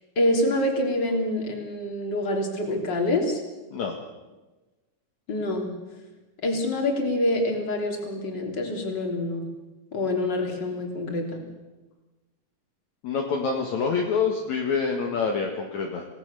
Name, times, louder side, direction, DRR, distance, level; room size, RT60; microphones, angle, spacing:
voice 1, 0.2-3.4 5.3-5.7 6.4-9.5 9.9-11.4, left 1 dB, 30° left, 2 dB, 3.7 m, -26 dB
voice 2, 13.0-16.1, left 5 dB, 60° left, 1 dB, 2.9 m, -26 dB
27.5 x 18.0 x 6.8 m, 1.2 s
omnidirectional pair, 4.0 m